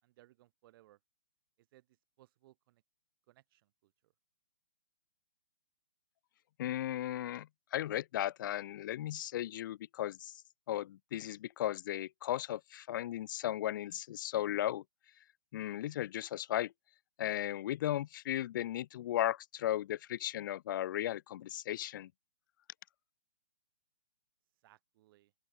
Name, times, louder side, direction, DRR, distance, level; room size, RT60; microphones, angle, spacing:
voice 1, 0.0-1.0 1.6-1.9 2.2-2.8 3.3-4.1 24.6-25.3, right 16 dB, 35° right, 6.2 m, -65 dB
voice 2, 6.6-10.3 10.7-14.8 15.5-16.7 17.2-22.1, left 13 dB, 35° left, 0.5 m, -36 dB
open air
hypercardioid pair, 155°, 20 cm